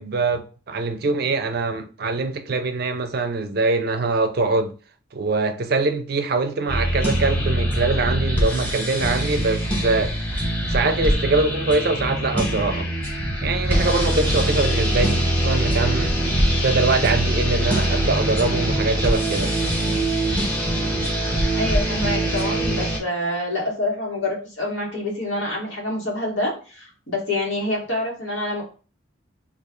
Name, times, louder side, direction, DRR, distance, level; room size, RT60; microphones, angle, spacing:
voice 1, 0.0-4.7 5.1-10.2 10.7-12.9 13.4-16.2 16.6-19.6, right 3 dB, 50° right, 0.4 m, -23 dB
sound 1, 6.7-23.0, right 1 dB, 5° left, 0.8 m, -23 dB
voice 2, 19.8-20.1 21.5-28.6, left 1 dB, 70° left, 1.5 m, -27 dB
3.2 x 2.4 x 3.6 m
head